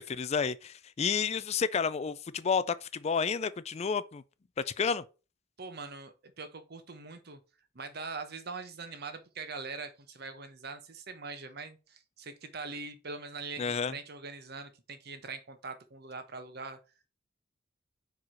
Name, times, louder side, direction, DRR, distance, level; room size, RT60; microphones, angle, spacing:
voice 1, 0.1-4.2 4.7-5.0 13.6-13.9, left 6 dB, 35° left, 0.4 m, -30 dB
voice 2, 5.6-7.4 7.7-16.8, right 4 dB, 55° right, 1.0 m, -42 dB
4.8 x 4.7 x 5.7 m
head